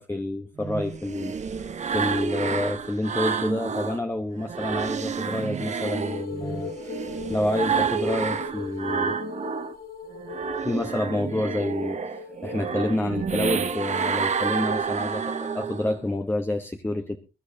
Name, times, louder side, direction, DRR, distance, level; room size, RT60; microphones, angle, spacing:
voice 1, 0.0-9.2 10.6-17.2, left 1 dB, 15° left, 5 dB, 1.0 m, -29 dB
sound 1, 0.6-4.0 4.4-9.7 10.1-16.0, right 6 dB, 45° right, 1.0 m, -29 dB
sound 2, 5.8-13.9, left 5 dB, 65° left, 2.7 m, -39 dB
22.5 x 12.5 x 2.8 m, 0.30 s
wide cardioid pair, 125°, 17 cm